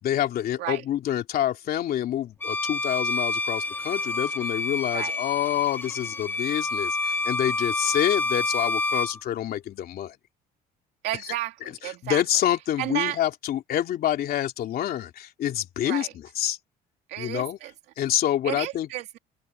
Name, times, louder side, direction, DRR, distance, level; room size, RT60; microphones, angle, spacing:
voice 1, 0.0-10.2 12.0-16.6 17.2-17.6 18.0-18.9, left 11 dB, 65° left, 3.1 m, -27 dB
Bowed string instrument, 2.4-9.2, left 3 dB, 10° left, 1.3 m, -28 dB
voice 2, 11.0-12.2 12.8-13.2 15.8-16.1 17.1-17.7 18.4-19.2, right 15 dB, 85° right, 2.5 m, -32 dB
cardioid pair, 110°, 17 cm